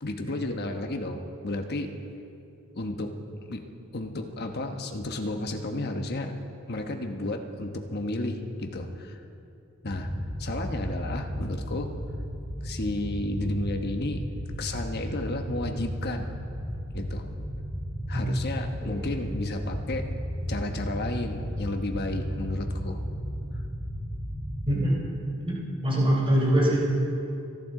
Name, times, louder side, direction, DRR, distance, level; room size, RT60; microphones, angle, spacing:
voice 1, 0.0-1.9 2.7-3.1 3.5-3.6 3.9-6.3 6.7-9.2 9.8-10.1 10.4-11.9 12.6-14.2 14.6-16.3 16.9-17.3 18.1-20.1 20.5-23.0, left 2 dB, 50° left, 5 dB, 1.1 m, -32 dB
sound 1, 9.8-24.6, equal, 20° left, 3.8 m, -34 dB
voice 2, 18.8-19.3 24.7-25.0 25.4-26.8, right 1 dB, 25° right, -4 dB, 3.8 m, -24 dB
25.0 x 12.0 x 3.8 m, 2.7 s
head